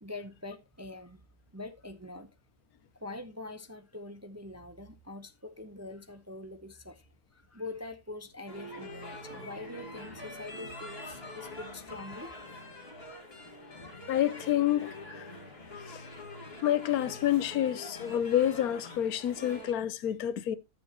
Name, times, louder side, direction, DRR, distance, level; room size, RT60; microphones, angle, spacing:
voice 1, 0.0-1.2 1.5-2.3 3.0-7.1 7.3-12.4, left 2 dB, 15° right, 0.5 m, -44 dB
sound 1, 8.5-19.7, left 1 dB, 45° left, 2.5 m, -45 dB
voice 2, 14.1-15.3 15.9-16.0 16.6-20.6, left 11 dB, 90° left, 1.3 m, -28 dB
14.0 x 7.0 x 2.9 m
omnidirectional pair, 1.5 m